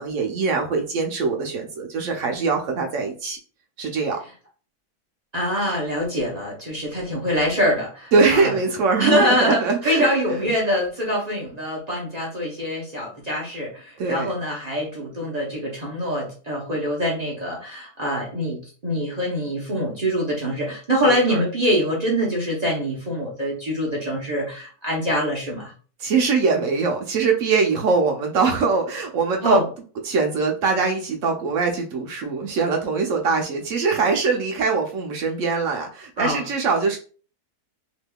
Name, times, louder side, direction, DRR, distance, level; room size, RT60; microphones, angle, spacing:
voice 1, 0.0-3.4 3.8-4.2 8.1-10.4 14.0-14.3 21.0-21.4 26.0-29.6 30.0-37.0, right 4 dB, 65° right, 3 dB, 0.8 m, -22 dB
voice 2, 5.3-8.6 9.0-25.7 29.4-29.6 36.2-36.5, equal, 40° right, -3 dB, 0.6 m, -24 dB
3.4 x 2.9 x 2.2 m, 0.39 s
omnidirectional pair, 1.7 m